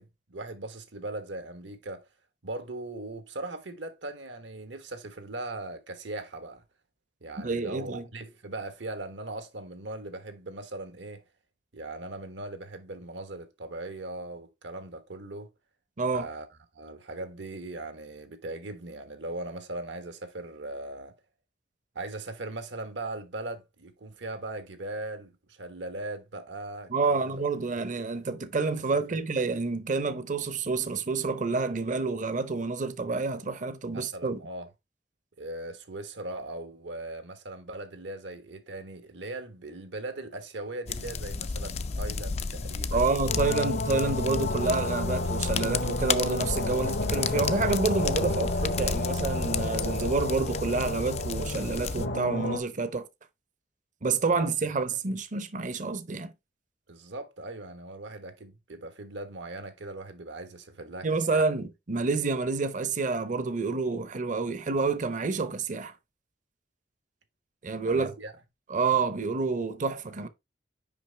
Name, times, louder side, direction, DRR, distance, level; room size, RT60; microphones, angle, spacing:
voice 1, 0.0-2.1 2.4-6.6 7.2-11.2 11.7-15.5 16.1-16.5 16.7-21.1 21.9-27.4 27.8-27.9 28.9-29.2 33.9-34.7 35.4-43.4 56.9-61.4 67.7-68.3, right 2 dB, 80° right, 1.1 m, -39 dB
voice 2, 7.4-8.0 16.0-16.3 26.9-34.4 42.9-53.1 54.0-56.3 61.0-65.9 67.6-68.1 68.7-70.3, right 4 dB, 45° right, 0.7 m, -28 dB
sound 1, 40.9-52.1, left 5 dB, 35° left, 0.4 m, -33 dB
sound 2, 43.3-52.6, left 2 dB, 65° left, 0.9 m, -31 dB
6.0 x 5.2 x 3.3 m
head